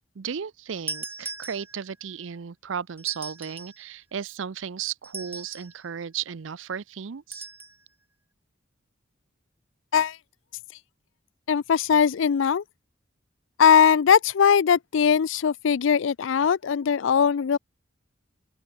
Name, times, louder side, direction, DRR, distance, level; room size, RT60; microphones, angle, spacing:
voice 1, 0.0-7.5, right 7 dB, 70° right, 0.5 m, -35 dB
sound 1, 0.9-2.0 3.0-3.8 5.0-5.8 7.3-7.8, right 3 dB, 10° right, 1.0 m, -38 dB
voice 2, 11.5-12.6 13.6-17.6, left 7 dB, 70° left, 0.4 m, -20 dB
open air
head